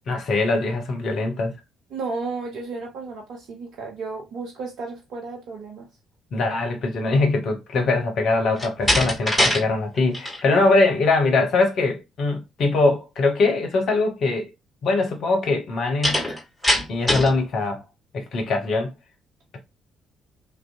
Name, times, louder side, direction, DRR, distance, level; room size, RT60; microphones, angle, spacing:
voice 1, 0.1-1.5 6.3-14.5 14.8-16.2 16.9-17.8 18.1-18.9, left 3 dB, 55° left, 0.6 m, -22 dB
voice 2, 1.9-5.9 10.5-10.6, right 4 dB, 60° right, 0.4 m, -33 dB
Slam, 8.5-9.6 10.0-10.4 16.0-17.4, left 1 dB, 5° left, 1.4 m, -22 dB
2.5 x 2.1 x 2.5 m
figure-of-eight pair, 45°, 0 cm